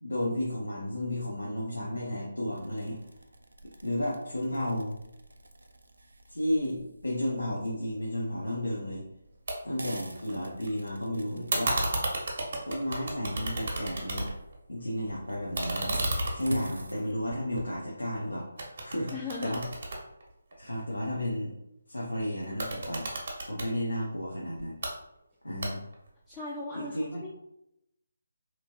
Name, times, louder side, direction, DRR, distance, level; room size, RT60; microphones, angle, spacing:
voice 1, 0.0-3.0 3.8-5.0 6.3-9.0 9.6-11.8 12.6-14.3 14.7-15.9 16.3-18.5 18.8-19.1 19.4-19.6 20.6-21.5 21.9-23.1 23.5-24.8 25.4-25.8 26.8-27.2, left 1 dB, 90° left, -4 dB, 0.7 m, -32 dB
sound 1, 2.5-14.5 15.1-17.1, right 1 dB, 75° right, 0.4 m, -47 dB
sound 2, 9.5-9.6 9.9-10.7 11.5-14.6 14.9-18.2 18.6-20.8 22.4-23.7 24.6-24.9 25.6-26.1, right 2 dB, 55° right, 0.8 m, -33 dB
voice 2, 19.1-19.5 26.3-27.3, left 3 dB, 10° left, -7 dB, 0.4 m, -38 dB
2.9 x 2.5 x 2.8 m, 0.84 s
figure-of-eight pair, 150°, 0 cm